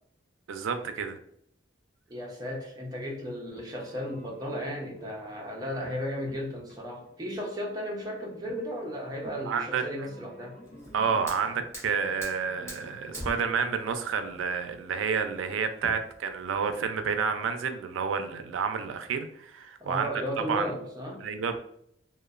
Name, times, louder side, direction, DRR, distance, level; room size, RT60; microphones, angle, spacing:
voice 1, 0.5-1.2 9.5-10.1 10.9-20.1 20.4-20.7 21.2-21.6, right 6 dB, 90° right, 8 dB, 0.3 m, -30 dB
voice 2, 2.1-10.6 19.8-21.3, equal, 20° right, -2 dB, 0.5 m, -35 dB
sound 1, 3.5-14.4, equal, 50° left, 0.7 m, -52 dB
Fire, 10.6-16.6, equal, 15° left, 0.8 m, -45 dB
2.9 x 2.0 x 2.3 m, 0.70 s
head